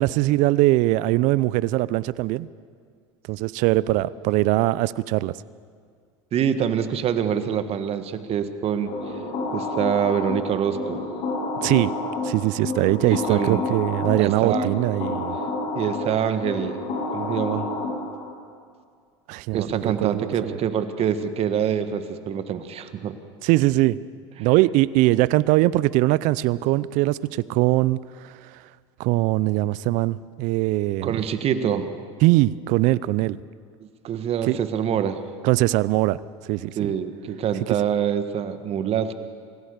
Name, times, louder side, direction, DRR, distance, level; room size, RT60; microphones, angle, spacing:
voice 1, 0.0-2.5 3.3-5.3 11.6-11.9 12.2-15.4 19.3-20.6 23.4-24.0 24.4-28.4 29.0-31.2 32.2-33.4 34.4-34.6 35.4-36.2 36.5-36.9, right 18 dB, 55° right, 20 dB, 0.6 m, -21 dB
voice 2, 6.3-8.9 9.5-11.0 13.1-13.6 14.2-14.7 15.7-16.8 17.1-17.7 19.5-23.2 31.0-31.9 34.0-35.2 36.7-39.1, right 8 dB, 40° right, 10 dB, 1.5 m, -25 dB
sound 1, 8.9-18.3, left 2 dB, 55° left, 5.5 m, -29 dB
25.0 x 16.0 x 6.7 m, 2.1 s
hypercardioid pair, 85°, 15 cm